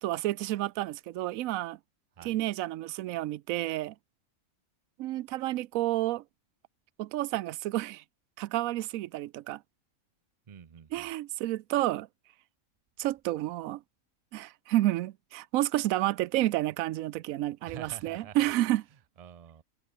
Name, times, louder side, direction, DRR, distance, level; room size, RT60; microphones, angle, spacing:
voice 1, 0.0-1.8 2.2-3.9 5.0-6.2 7.0-8.0 8.4-9.6 10.9-12.1 13.0-13.8 14.3-18.8, right 15 dB, 75° right, 1.0 m, -30 dB
voice 2, 10.5-11.1 17.6-18.4 19.2-19.6, right 8 dB, 40° right, 0.6 m, -47 dB
omnidirectional pair, 1.5 m